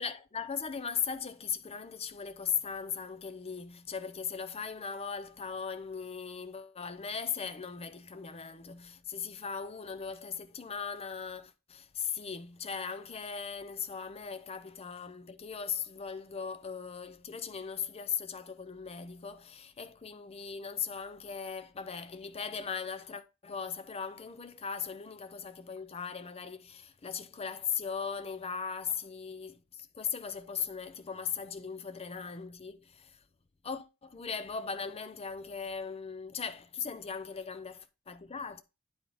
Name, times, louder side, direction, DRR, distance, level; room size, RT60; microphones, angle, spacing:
voice 1, 0.0-33.2 33.6-38.6, left 6 dB, 30° left, 0.6 m, -38 dB
9.0 x 3.7 x 4.9 m
head